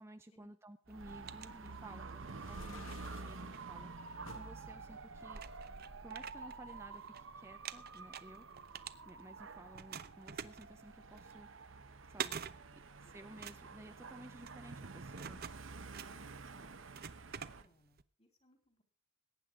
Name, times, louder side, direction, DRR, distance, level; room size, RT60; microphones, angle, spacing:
voice 1, 0.0-5.4 6.0-8.5 9.0-11.5 12.1-12.4 12.7-15.5, right 1 dB, 15° right, 7 dB, 0.6 m, -55 dB
sound 1, 0.9-2.2 2.6-4.3 4.9-5.0 5.3-7.2 7.5-9.4 9.7-18.0, right 8 dB, 50° right, 0.8 m, -48 dB
Dog / Motorcycle, 0.9-17.6, right 4 dB, 70° right, 1.0 m, -49 dB
sound 2, 2.3-3.4 4.3-4.5 5.2-6.2, left 3 dB, 75° left, 1.6 m, -55 dB
voice 2, 12.8-13.3 16.1-16.8 17.4-18.8, left 1 dB, 30° left, 5 dB, 3.6 m, -70 dB
21.5 x 9.8 x 3.7 m, 0.36 s
head